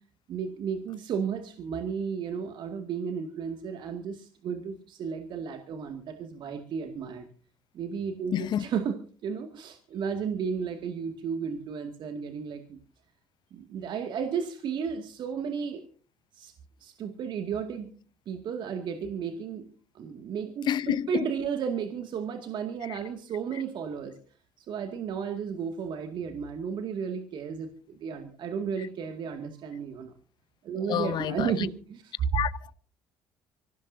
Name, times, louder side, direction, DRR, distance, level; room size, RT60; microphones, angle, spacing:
voice 1, 0.3-7.3 7.7-8.9 9.2-12.8 13.5-15.8 16.3-16.5 16.8-17.9 18.3-19.6 19.9-24.2 24.7-30.1 30.6-32.0, right 6 dB, 60° right, 2.3 m, -33 dB
voice 2, 8.3-8.6 20.7-21.2 22.9-23.0 30.9-31.7 32.3-32.7, left 10 dB, 55° left, 0.7 m, -29 dB
25.0 x 16.5 x 2.8 m
hypercardioid pair, 60°, 9 cm